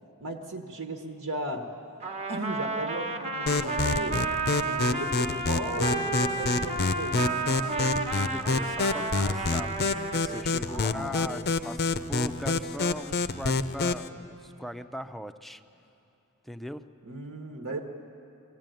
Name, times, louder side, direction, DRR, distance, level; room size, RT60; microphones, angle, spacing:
voice 1, 0.2-1.7 2.3-4.2 4.6-7.2 10.7-11.5 17.0-17.9, right 2 dB, 70° right, 2 dB, 1.3 m, -36 dB
Trumpet, 2.0-10.4, right 3 dB, 30° right, 1.1 m, -32 dB
sound 1, 3.5-14.1, left 3 dB, 50° left, 0.6 m, -28 dB
voice 2, 7.4-15.6 16.4-16.9, equal, ahead, 9 dB, 0.5 m, -40 dB
23.5 x 16.0 x 9.1 m, 2.9 s
head